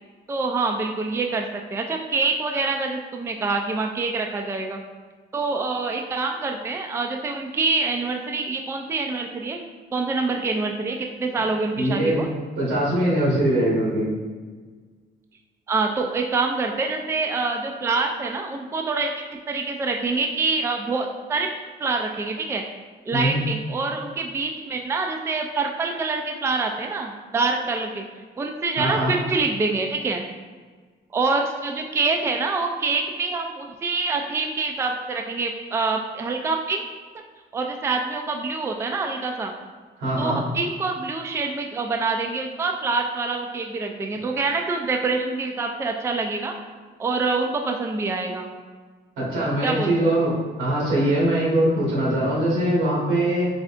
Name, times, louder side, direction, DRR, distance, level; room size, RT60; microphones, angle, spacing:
voice 1, 0.3-4.8 5.3-9.6 9.9-12.3 15.7-19.1 19.5-21.5 21.8-22.6 23.1-28.0 28.4-30.2 31.1-36.8 37.5-39.5 40.2-46.5 47.0-48.5 49.6-50.1, right 3 dB, 15° right, 3 dB, 0.3 m, -26 dB
voice 2, 11.8-12.2 12.6-14.1 23.1-23.4 28.8-29.1 40.0-40.4 49.2-50.3 50.6-53.5, right 1 dB, 90° right, -6 dB, 1.5 m, -22 dB
3.8 x 3.2 x 2.5 m, 1.5 s
cardioid pair, 90°, 20 cm